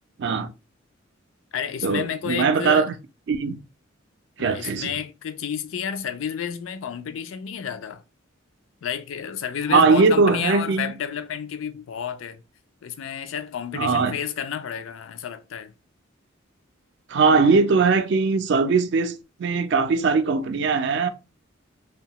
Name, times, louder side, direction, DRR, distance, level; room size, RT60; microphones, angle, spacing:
voice 1, 0.2-0.5 1.8-2.9 3.3-3.6 4.4-4.9 9.7-10.9 13.7-14.1 17.1-19.1 19.4-21.1, right 4 dB, 60° right, 0.3 m, -20 dB
voice 2, 1.5-2.9 4.4-8.0 8.8-12.4 12.8-15.7, left 8 dB, 80° left, 0.4 m, -31 dB
2.7 x 2.2 x 2.8 m
head